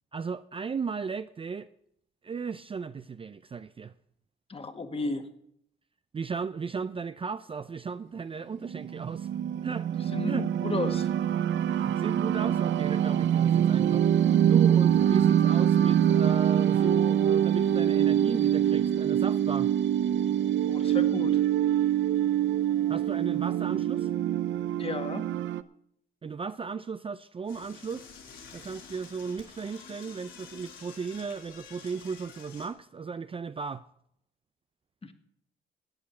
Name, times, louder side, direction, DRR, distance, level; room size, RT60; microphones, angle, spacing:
voice 1, 0.1-1.7 2.2-3.9 6.1-10.5 11.7-19.7 22.9-24.1 26.2-28.1 28.5-33.8, right 5 dB, 25° right, 0.5 m, -36 dB
voice 2, 4.5-5.3 10.1-11.1 20.7-21.4 24.8-25.3 35.0-35.1, left 3 dB, 30° left, 1.8 m, -33 dB
sound 1, 8.6-25.6, right 10 dB, 70° right, 0.7 m, -24 dB
Door / Toilet flush, 27.4-32.7, left 6 dB, 75° left, 5.3 m, -49 dB
13.0 x 8.6 x 8.4 m
cardioid pair, 90°, 20 cm